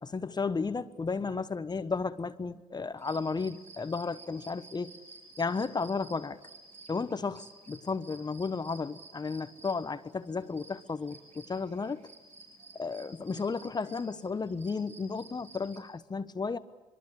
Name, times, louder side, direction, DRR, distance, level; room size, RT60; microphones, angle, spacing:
voice 1, 0.0-5.0 5.4-6.4 6.9-12.0 12.7-16.6, left 4 dB, 30° left, 13 dB, 1.2 m, -33 dB
sound 1, 3.0-15.8, right 3 dB, 55° right, 6.0 m, -53 dB
24.5 x 23.0 x 8.5 m, 1.1 s
supercardioid pair, 65°, 14 cm